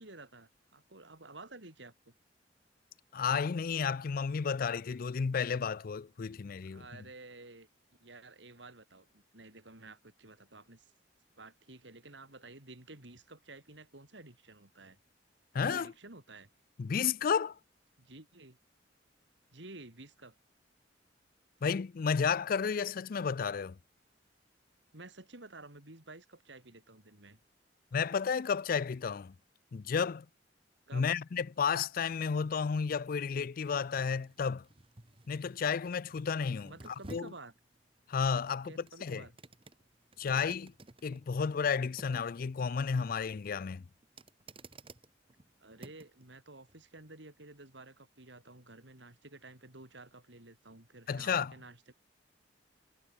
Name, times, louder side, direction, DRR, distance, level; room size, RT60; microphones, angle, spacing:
voice 1, 0.0-2.1 6.7-7.7 8.0-10.9 11.4-15.0 15.6-16.5 18.0-18.6 19.5-20.3 24.9-27.4 30.9-31.2 36.6-37.5 38.5-39.3 45.6-51.9, right 2 dB, 70° right, 3.6 m, -52 dB
voice 2, 3.1-6.9 15.5-15.9 16.8-17.6 21.6-23.8 27.9-29.3 29.7-30.3 30.9-34.7 35.3-37.3 38.1-39.3 40.2-40.7 41.0-43.9 51.1-51.5, left 6 dB, 50° left, 0.4 m, -32 dB
sound 1, 31.9-46.2 46.7-46.8, right 2 dB, 30° right, 1.5 m, -56 dB
head